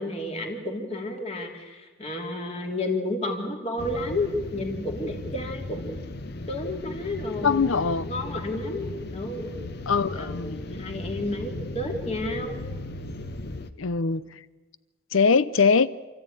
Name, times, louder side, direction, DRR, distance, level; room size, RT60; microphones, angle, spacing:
voice 1, 0.0-6.0 6.5-9.5 10.1-12.6, left 1 dB, 30° left, 2.9 m, -31 dB
sound 1, 3.8-13.7, left 2 dB, 55° left, 1.0 m, -36 dB
voice 2, 7.4-8.1 9.9-10.6 13.8-14.2 15.1-15.9, left 5 dB, 85° left, 0.7 m, -22 dB
28.0 x 13.5 x 8.9 m
head